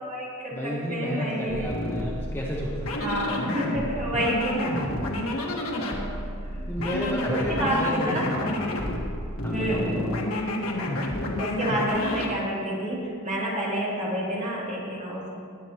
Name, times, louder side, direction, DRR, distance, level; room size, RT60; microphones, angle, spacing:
voice 1, 0.0-1.7 3.0-4.8 5.6-6.2 6.5-6.7 7.3-8.4 9.5-9.9 11.4-15.3, equal, 35° right, -6 dB, 3.0 m, -29 dB
voice 2, 0.5-4.3 4.7-5.0 6.7-8.5 9.4-10.2, equal, 10° left, -4 dB, 1.1 m, -33 dB
sound 1, 1.5-12.3, left 1 dB, 85° left, 1.6 m, -30 dB
20.0 x 8.9 x 3.0 m, 2.2 s
head